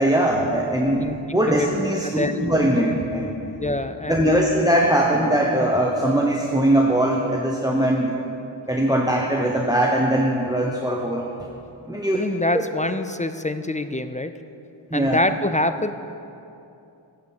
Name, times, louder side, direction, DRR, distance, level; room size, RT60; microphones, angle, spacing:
voice 1, 0.0-3.4 4.1-8.1 8.7-11.3 11.9-12.2 12.5-12.6 14.9-15.2, right 1 dB, 10° right, -1 dB, 0.9 m, -21 dB
voice 2, 0.7-1.2 1.5-1.8 2.0-2.4 3.6-4.5 12.1-14.3 14.9-15.9, left 2 dB, 20° left, 10 dB, 0.3 m, -26 dB
9.4 x 6.5 x 7.4 m, 2.7 s
wide cardioid pair, 50°, 46 cm